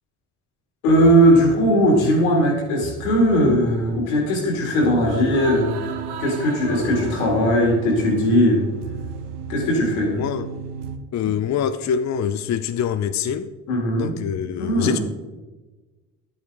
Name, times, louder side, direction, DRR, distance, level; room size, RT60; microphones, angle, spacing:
voice 1, 0.8-5.7 6.2-8.6 9.5-10.2 13.7-14.2 14.6-15.0, equal, 85° left, 0 dB, 2.6 m, -18 dB
sound 1, 0.9-11.0, right 7 dB, 75° right, 1.1 m, -34 dB
voice 2, 10.1-10.5 11.1-13.5 14.0-15.0, left 8 dB, 45° left, 10 dB, 0.6 m, -25 dB
11.0 x 8.7 x 3.6 m, 1.2 s
hypercardioid pair, 50°, 41 cm